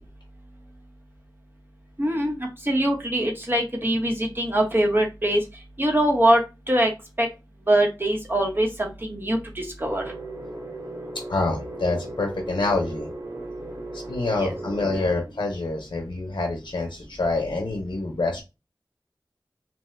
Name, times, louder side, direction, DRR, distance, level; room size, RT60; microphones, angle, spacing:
voice 1, 2.0-5.4 5.8-6.4 6.7-6.9 7.2-7.3 7.7-10.1 14.3-14.5, right 1 dB, 25° right, 1 dB, 1.0 m, -23 dB
sound 1, 9.8-15.1, right 2 dB, 70° right, 1.6 m, -37 dB
voice 2, 11.3-13.1 14.1-18.4, left 2 dB, 75° left, 2 dB, 0.6 m, -26 dB
2.9 x 2.2 x 3.1 m, 0.26 s
wide cardioid pair, 50°, 8 cm